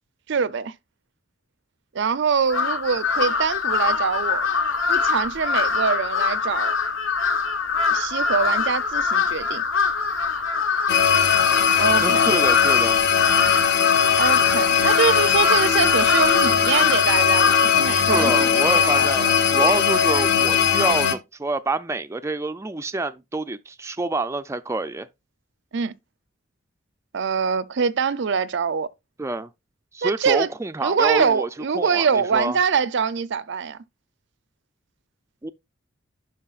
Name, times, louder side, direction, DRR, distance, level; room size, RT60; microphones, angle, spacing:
voice 1, 0.3-0.7 1.9-4.5 4.9-6.8 7.9-9.6 11.8-12.3 14.2-19.3 19.6-19.8 25.7-25.9 27.1-28.9 30.0-30.5 30.8-33.8, right 6 dB, 65° right, 0.5 m, -24 dB
Crow, 2.5-17.9, left 5 dB, 85° left, 1.1 m, -24 dB
sound 1, 10.9-21.1, left 7 dB, 60° left, 0.9 m, -19 dB
voice 2, 12.0-13.0 17.9-25.1 29.2-29.5 29.9-31.5 31.8-32.1 32.3-32.6 35.4-35.5, right 2 dB, 15° right, 0.4 m, -27 dB
11.0 x 4.6 x 2.4 m
head